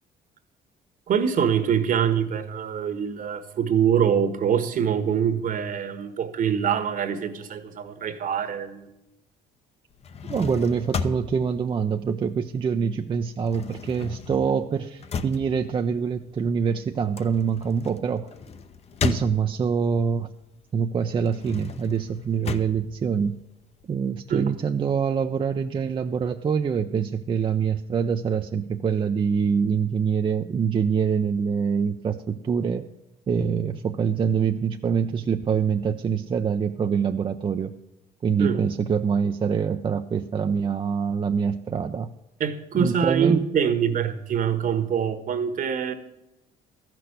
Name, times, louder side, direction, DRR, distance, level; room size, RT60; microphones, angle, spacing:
voice 1, 1.1-8.9 24.3-24.5 38.4-38.6 42.4-45.9, right 8 dB, 55° right, 9 dB, 1.4 m, -24 dB
sound 1, 9.9-12.8 13.0-19.9 20.3-23.9, left 5 dB, 40° left, 0.8 m, -35 dB
voice 2, 10.3-18.3 19.0-20.3 20.7-23.4 23.9-32.9 33.3-37.7 38.2-42.1 42.7-43.4, right 6 dB, 30° right, 6 dB, 0.5 m, -25 dB
13.5 x 6.0 x 8.1 m, 0.92 s
cardioid pair, 110°, 17 cm